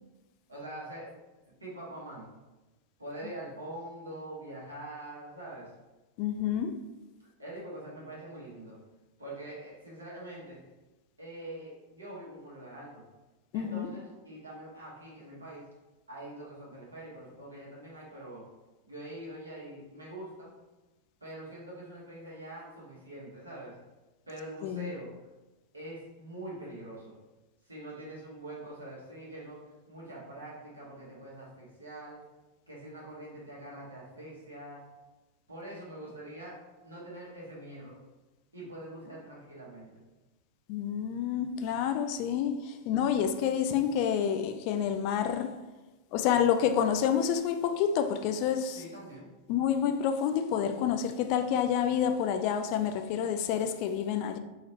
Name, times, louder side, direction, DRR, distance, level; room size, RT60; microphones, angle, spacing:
voice 1, 0.5-1.1 1.6-2.3 3.0-5.7 7.4-8.8 9.2-10.6 11.2-13.0 13.5-15.6 16.1-18.4 18.8-20.5 21.2-23.8 24.3-25.1 25.7-27.1 27.6-29.6 29.9-32.2 32.7-34.8 35.5-36.6 36.8-38.0 38.5-40.0 48.7-49.3, right 1 dB, 80° right, 1.2 m, -44 dB
voice 2, 6.2-6.7 13.5-13.9 24.6-24.9 40.7-45.5 46.1-48.8 49.5-54.4, left 8 dB, 45° left, 0.3 m, -28 dB
3.7 x 3.0 x 2.8 m
figure-of-eight pair, 90°, 0 cm